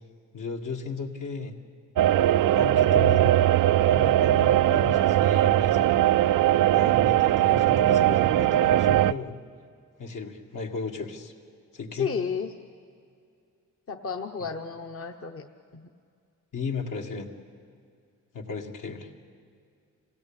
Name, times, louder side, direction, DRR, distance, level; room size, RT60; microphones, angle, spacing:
voice 1, 0.3-1.5 2.5-3.3 3.9-5.9 6.7-9.3 10.0-11.3 11.7-12.1 16.5-17.3 18.3-19.1, left 4 dB, 70° left, 1 dB, 2.3 m, -35 dB
sound 1, 2.0-9.1, right 13 dB, 75° right, 0.5 m, -20 dB
voice 2, 11.9-12.5 13.9-15.5 15.7-15.9, left 6 dB, 45° left, 3 dB, 1.1 m, -32 dB
27.0 x 17.0 x 8.8 m, 2.4 s
cardioid pair, 85°, 33 cm